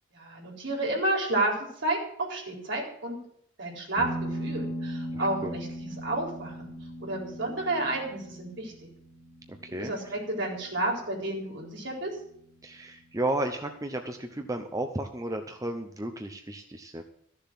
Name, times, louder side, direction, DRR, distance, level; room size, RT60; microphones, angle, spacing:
voice 1, 0.1-3.2 3.6-6.7 7.0-8.9 9.8-12.2, right 2 dB, 65° right, -1 dB, 4.1 m, -31 dB
sound 1, 4.0-13.0, right 1 dB, 20° left, 3.0 m, -39 dB
voice 2, 5.1-5.5 9.6-10.2 12.6-17.0, right 1 dB, 15° right, 5 dB, 0.8 m, -33 dB
14.0 x 7.0 x 7.6 m, 0.68 s
head